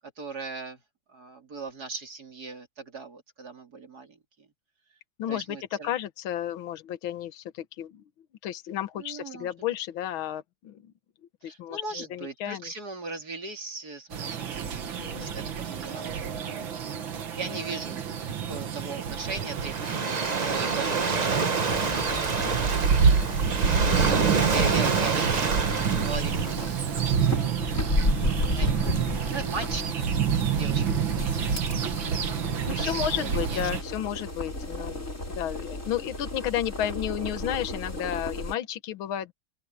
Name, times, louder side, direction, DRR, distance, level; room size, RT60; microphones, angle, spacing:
voice 1, 0.0-0.8 1.1-4.5 5.3-5.9 9.0-9.5 11.4-16.9 17.4-18.0 18.5-22.6 24.5-27.4 28.5-31.3 32.3-33.9, right 4 dB, 50° right, 3.6 m, -39 dB
voice 2, 5.2-8.0 8.4-10.9 11.4-12.7 15.0-15.3 23.7-24.2 32.7-39.3, left 11 dB, 80° left, 1.9 m, -32 dB
sound 1, 14.1-33.8, right 7 dB, 70° right, 2.3 m, -28 dB
Waves surf, 19.0-27.3, right 4 dB, 30° right, 0.8 m, -28 dB
sound 2, 21.7-38.5, left 1 dB, 35° left, 5.9 m, -34 dB
omnidirectional pair, 2.2 m